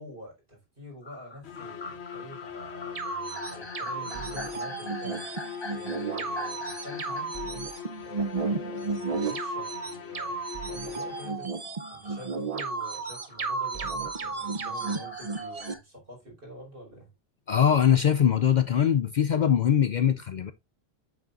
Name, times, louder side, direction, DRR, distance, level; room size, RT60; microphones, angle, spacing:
voice 1, 0.0-7.4 8.0-11.5 11.9-17.1, equal, 60° right, 4.8 m, -46 dB
sound 1, 1.0-7.3 7.8-7.9 9.3-9.4 11.8-15.8, left 3 dB, 25° left, 0.9 m, -44 dB
sound 2, 1.4-11.7, left 8 dB, 80° left, 1.1 m, -41 dB
sound 3, 3.0-15.7, right 4 dB, 40° right, 0.8 m, -33 dB
voice 2, 17.5-20.5, left 9 dB, 55° left, 0.6 m, -22 dB
8.0 x 7.3 x 2.5 m
omnidirectional pair, 1.1 m